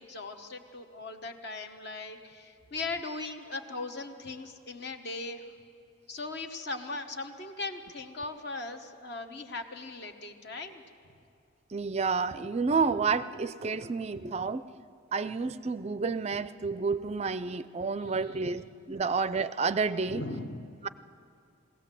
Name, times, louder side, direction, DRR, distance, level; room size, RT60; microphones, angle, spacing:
voice 1, 0.0-5.5 6.1-10.8 18.0-18.6 20.1-20.8, left 3 dB, 50° left, 6 dB, 1.1 m, -39 dB
voice 2, 11.7-14.7 15.1-20.2, right 4 dB, 30° right, 15 dB, 0.4 m, -30 dB
21.5 x 17.0 x 7.5 m, 2.4 s
head